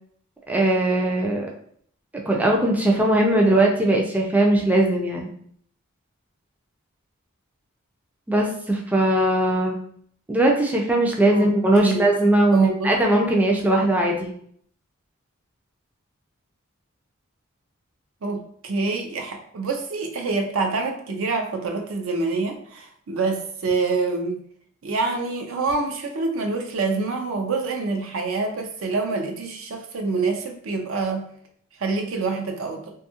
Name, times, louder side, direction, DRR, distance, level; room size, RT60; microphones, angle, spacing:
voice 1, 0.5-1.5 2.2-5.3 8.3-9.7 10.3-14.3, right 1 dB, 5° right, -1 dB, 0.3 m, -20 dB
voice 2, 12.5-12.9 18.2-24.4 24.8-31.3 31.8-32.9, right 3 dB, 70° right, 4 dB, 0.5 m, -26 dB
2.7 x 2.3 x 2.7 m, 0.62 s
head